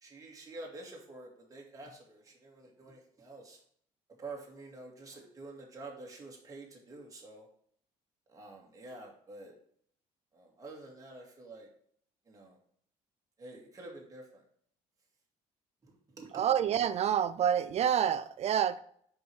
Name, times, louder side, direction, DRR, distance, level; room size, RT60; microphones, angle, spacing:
voice 1, 0.0-3.6 4.2-7.5 8.3-9.5 10.3-11.7 12.3-12.6 13.4-14.4 15.8-16.4, right 2 dB, 25° right, 2.1 m, -48 dB
voice 2, 16.3-18.8, right 9 dB, 50° right, 0.4 m, -28 dB
5.2 x 4.8 x 4.7 m
cardioid pair, 90°, 14 cm